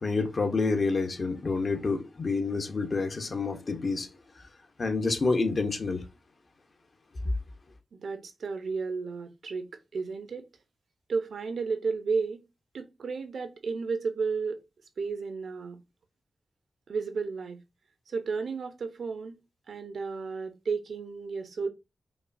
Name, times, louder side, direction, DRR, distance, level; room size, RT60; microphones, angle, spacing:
voice 1, 0.0-4.1 4.8-6.0, left 3 dB, 50° left, 0.9 m, -28 dB
voice 2, 7.9-10.5 11.1-12.4 12.7-14.6 15.0-15.8 16.9-17.6 18.1-19.4 19.7-21.7, right 4 dB, 75° right, 0.7 m, -33 dB
5.1 x 2.3 x 2.6 m
cardioid pair, 55°, 0 cm